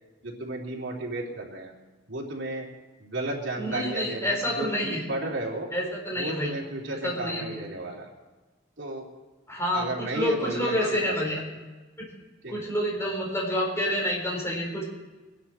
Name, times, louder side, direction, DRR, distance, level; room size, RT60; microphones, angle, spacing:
voice 1, 0.2-1.7 2.1-2.7 3.0-5.7 6.2-8.1 8.8-9.1 9.7-10.7 11.0-11.2 12.4-12.6, right 2 dB, 75° right, -2 dB, 3.1 m, -33 dB
voice 2, 3.6-5.0 5.7-6.6 6.9-7.6 9.5-11.4 12.0-12.1 12.5-14.9, left 1 dB, 15° left, -1 dB, 4.2 m, -28 dB
22.5 x 10.5 x 4.3 m, 1.2 s
head